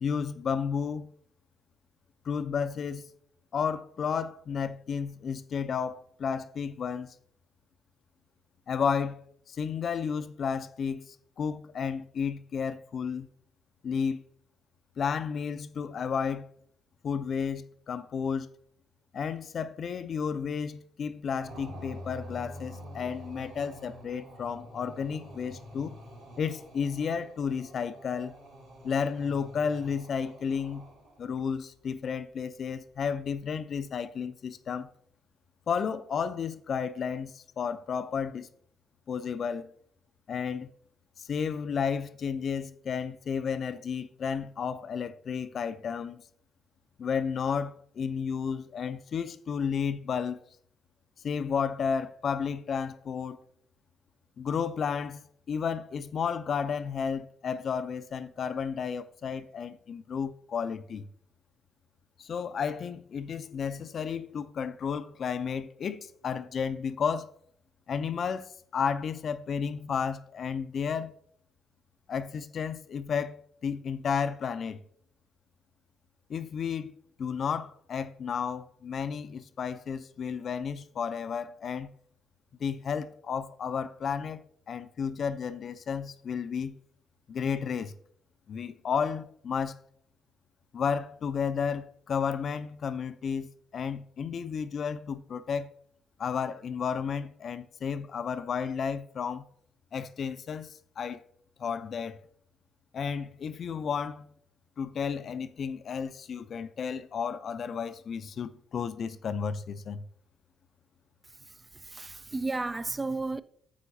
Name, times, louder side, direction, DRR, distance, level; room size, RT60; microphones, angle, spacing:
voice 1, 0.0-1.1 2.2-3.0 3.5-7.1 8.7-13.3 13.8-14.2 15.0-16.5 17.0-18.5 19.1-25.9 26.4-28.3 28.8-30.9 31.2-34.9 35.7-38.5 39.1-39.7 40.3-40.7 41.2-46.2 47.0-50.4 51.2-53.4 54.4-55.2 55.5-61.1 62.2-67.3 67.9-71.1 72.1-74.8 76.3-76.9 77.2-81.9 82.6-84.4 84.7-86.8 87.3-87.9 88.5-89.8 90.7-95.7 96.2-99.4 99.9-101.2 101.6-102.2 102.9-104.3 104.8-110.0, left 6 dB, 55° left, 0.5 m, -32 dB
sound 1, 21.4-31.3, equal, 90° right, 2.8 m, -47 dB
voice 2, 111.5-113.4, right 3 dB, 25° right, 0.4 m, -33 dB
10.0 x 7.7 x 2.7 m
hypercardioid pair, 50°, 0 cm